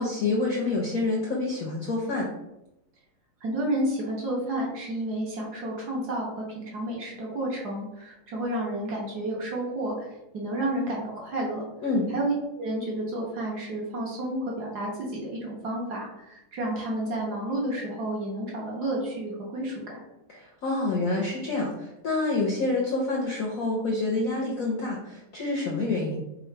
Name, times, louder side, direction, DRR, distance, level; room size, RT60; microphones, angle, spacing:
voice 1, 0.0-2.3 11.8-12.1 20.3-26.2, left 2 dB, 65° left, -2 dB, 0.8 m, -27 dB
voice 2, 3.4-10.1 10.3-11.6 12.1-20.0, right 1 dB, 60° right, -3 dB, 1.2 m, -31 dB
3.8 x 2.3 x 4.4 m, 0.88 s
omnidirectional pair, 2.3 m